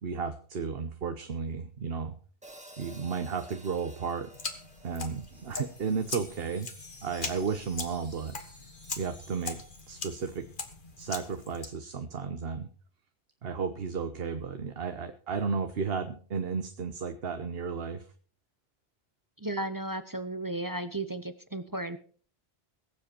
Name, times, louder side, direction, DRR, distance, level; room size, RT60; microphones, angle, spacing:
voice 1, 0.0-2.2 2.8-4.3 4.8-6.7 7.0-8.3 9.0-9.6 9.9-10.5 11.0-12.7 13.4-18.0, right 5 dB, 65° right, 8 dB, 1.2 m, -33 dB
Hi-hat, 2.4-6.6, right 1 dB, 5° right, 1.6 m, -53 dB
sound 1, 4.3-11.7, left 4 dB, 50° left, 1.6 m, -41 dB
Wind chime, 4.7-10.8, left 1 dB, 75° left, 5.5 m, -55 dB
voice 2, 19.4-22.0, right 1 dB, 20° right, 11 dB, 0.7 m, -34 dB
22.0 x 7.6 x 4.5 m, 0.42 s
omnidirectional pair, 1.1 m